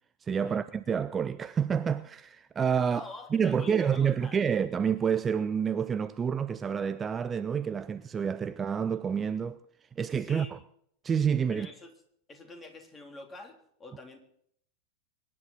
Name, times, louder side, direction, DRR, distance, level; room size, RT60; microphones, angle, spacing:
voice 1, 0.2-9.6 10.0-10.6 11.0-11.7, right 7 dB, 20° right, 0.5 m, -28 dB
voice 2, 2.8-4.5 10.2-10.6 11.5-11.9 12.3-14.2, left 2 dB, 20° left, 3.4 m, -46 dB
24.0 x 11.0 x 4.2 m
figure-of-eight pair, 90°, 0 cm